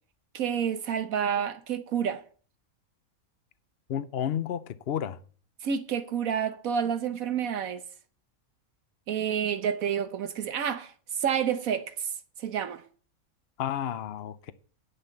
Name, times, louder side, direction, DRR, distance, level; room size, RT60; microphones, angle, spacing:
voice 1, 0.3-2.2 5.6-7.8 9.1-12.1 12.4-12.8, right 8 dB, 75° right, 1.2 m, -29 dB
voice 2, 3.9-5.2 13.6-14.5, left 9 dB, 55° left, 0.7 m, -31 dB
9.9 x 5.8 x 8.4 m
omnidirectional pair, 1.5 m